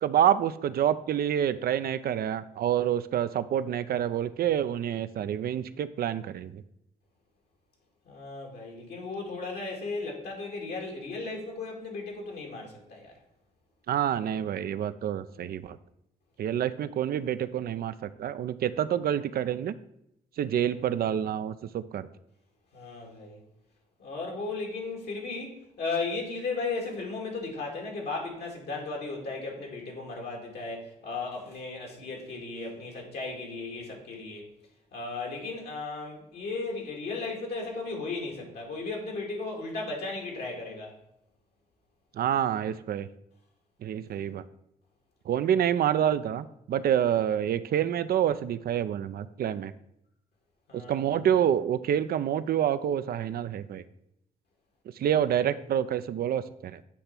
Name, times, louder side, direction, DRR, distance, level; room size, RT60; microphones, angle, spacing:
voice 1, 0.0-6.6 13.9-15.8 16.4-19.7 20.4-22.1 42.2-43.1 43.8-44.4 45.3-49.7 50.7-53.8 55.0-56.8, right 10 dB, 65° right, 13 dB, 0.5 m, -27 dB
voice 2, 8.1-13.2 20.6-20.8 22.7-23.4 24.0-34.4 34.9-40.9 50.7-51.0 55.0-55.2, left 3 dB, 75° left, 0 dB, 2.3 m, -36 dB
8.4 x 3.4 x 5.8 m, 0.79 s
supercardioid pair, 55°, 17 cm